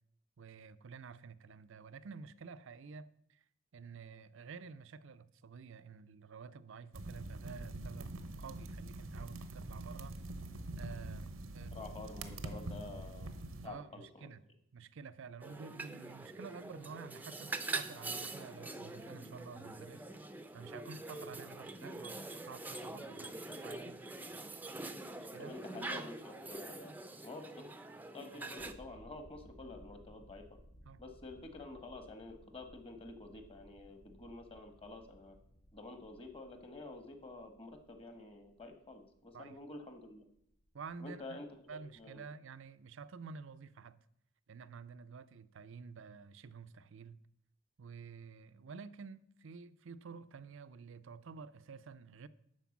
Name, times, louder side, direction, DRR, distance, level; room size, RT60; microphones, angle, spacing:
voice 1, 0.4-3.4 3.7-8.1 8.4-10.2 10.8-11.7 13.6-14.4 14.7-20.1 20.5-24.0 25.3-25.5 30.8-31.0 39.3-39.6 40.7-41.4 41.7-44.0 44.5-47.2 47.8-52.3, right 5 dB, 65° right, 0.5 m, -50 dB
sound 1, 6.9-13.7, right 2 dB, 90° right, 0.9 m, -44 dB
voice 2, 11.7-13.3 13.6-14.3 25.4-26.9 27.2-27.7 28.1-30.4 31.0-35.4 35.7-40.2 41.0-42.2, left 2 dB, 30° left, 1.3 m, -49 dB
sound 2, 15.4-28.7, right 3 dB, 10° right, 0.5 m, -44 dB
sound 3, 28.6-42.2, equal, 50° left, 1.0 m, -61 dB
12.0 x 4.5 x 7.1 m
head